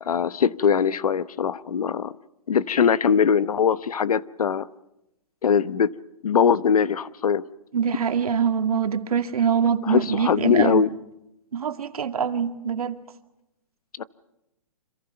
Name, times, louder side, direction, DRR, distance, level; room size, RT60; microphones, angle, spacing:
voice 1, 0.0-2.2 2.5-4.7 5.4-5.9 6.2-7.5 9.9-10.9 14.0-14.1, left 7 dB, 85° left, 1.1 m, -21 dB
voice 2, 7.7-10.8 11.5-13.0, right 7 dB, 85° right, 2.2 m, -24 dB
29.5 x 26.5 x 5.9 m
hypercardioid pair, 165°, 18 cm